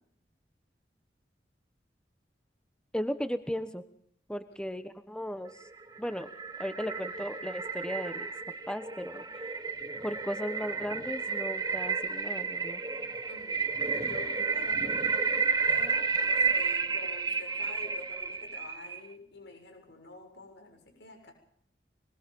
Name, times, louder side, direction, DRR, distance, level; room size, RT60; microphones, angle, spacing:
voice 1, 2.9-3.8 4.3-5.6 6.0-6.3 6.6-8.3 8.7-9.3 10.0-12.8, equal, 5° left, 10 dB, 1.2 m, -36 dB
sound 1, 5.7-19.1, right 5 dB, 20° right, 1.2 m, -31 dB
voice 2, 13.3-15.1 15.7-21.3, left 2 dB, 85° left, 4 dB, 7.2 m, -48 dB
24.0 x 22.0 x 5.4 m, 0.68 s
head